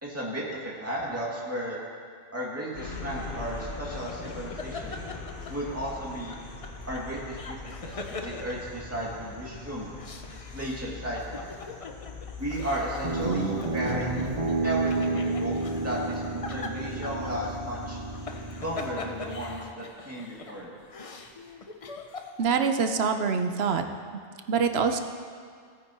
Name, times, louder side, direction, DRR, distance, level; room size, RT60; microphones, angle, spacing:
voice 1, 0.0-1.8 2.3-5.0 5.5-6.3 6.9-9.9 10.5-11.5 12.4-14.2 14.6-18.0 18.6-20.8, right 1 dB, 15° right, -6 dB, 2.3 m, -34 dB
sound 1, 2.7-18.9, left 4 dB, 60° left, 1.2 m, -42 dB
sound 2, 4.1-5.9 6.3-9.3 9.8-22.4, left 4 dB, 40° left, 0.7 m, -42 dB
Guitar, 13.0-19.6, right 3 dB, 35° right, 1.1 m, -31 dB
voice 2, 22.4-23.8 24.5-25.0, right 5 dB, 80° right, 7 dB, 1.0 m, -25 dB
18.0 x 9.1 x 3.0 m, 2.1 s
omnidirectional pair, 1.0 m